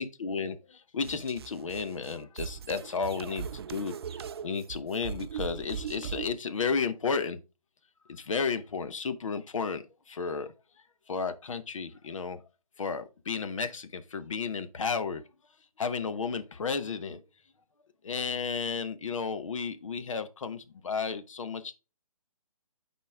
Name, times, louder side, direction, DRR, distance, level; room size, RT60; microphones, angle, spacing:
voice 1, 0.0-7.4 8.1-10.5 11.1-12.4 12.8-15.2 15.8-17.2 18.0-21.7, left 5 dB, 65° left, 0.9 m, -33 dB
sound 1, 1.0-6.4, right 7 dB, 45° right, 0.4 m, -39 dB
6.8 x 4.3 x 3.4 m
figure-of-eight pair, 145°, 18 cm